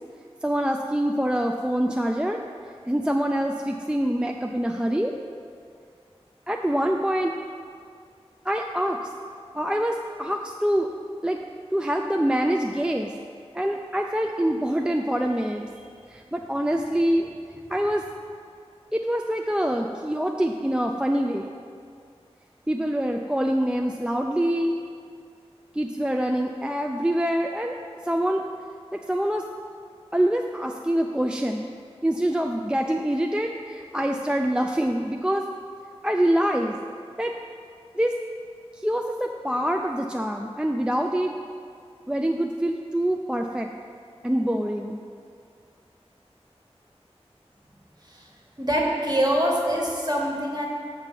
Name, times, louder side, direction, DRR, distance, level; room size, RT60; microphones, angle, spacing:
voice 1, 0.4-2.4 2.9-5.1 6.5-7.4 8.4-9.0 9.5-10.9 11.2-11.4 11.7-13.1 13.5-15.7 16.1-17.3 17.7-18.0 18.9-21.5 22.7-24.8 25.7-28.4 28.9-29.5 30.1-31.7 32.0-35.4 36.0-36.8 37.2-37.4 37.9-38.2 38.7-41.4 42.1-43.7 44.2-45.0, equal, 10° right, 2 dB, 0.4 m, -25 dB
voice 2, 48.6-50.7, equal, 40° right, -3 dB, 1.5 m, -24 dB
6.7 x 4.5 x 6.8 m, 2.3 s
wide cardioid pair, 55°, 11 cm